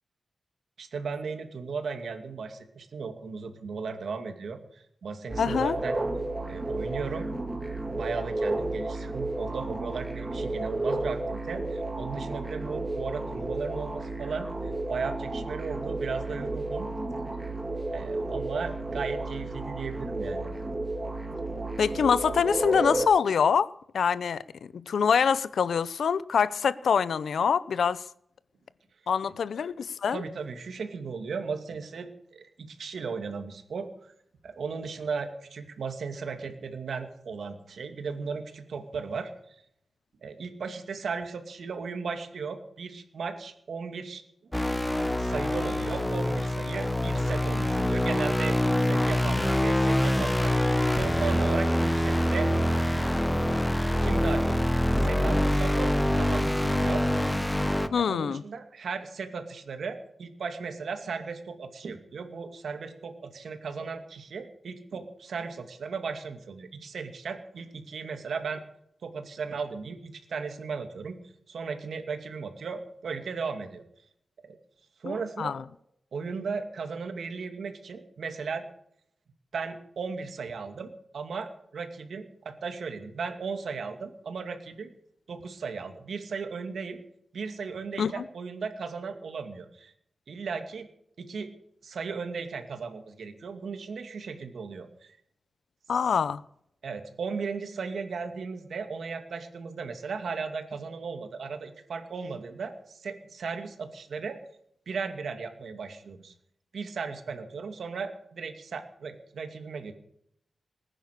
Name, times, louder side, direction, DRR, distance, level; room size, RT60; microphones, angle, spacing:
voice 1, 0.8-6.0 6.5-7.3 7.9-16.9 17.9-20.5 30.1-34.1 34.4-39.6 40.2-44.5 45.2-50.5 50.9-52.5 54.0-54.6 55.0-57.0 57.9-68.6 69.0-71.2 71.5-73.8 74.4-74.6 75.0-75.5 76.1-78.6 79.5-84.9 85.3-87.0 87.3-89.9 90.3-90.9 91.2-91.5 91.8-95.2 95.9-96.1 96.8-104.4 104.9-106.3 106.7-109.9, right 5 dB, 75° right, 2.4 m, -36 dB
sound 1, 5.3-23.1, right 2 dB, 15° right, 2.4 m, -32 dB
voice 2, 5.4-5.8 21.8-23.7 23.9-24.4 24.7-28.0 29.1-30.2 57.9-58.4 75.0-75.6 88.0-88.2 95.9-96.4, left 6 dB, 85° left, 0.6 m, -25 dB
sound 2, 44.5-57.9, left 1 dB, 5° left, 0.9 m, -25 dB
20.0 x 10.0 x 6.7 m
wide cardioid pair, 140°, 0 cm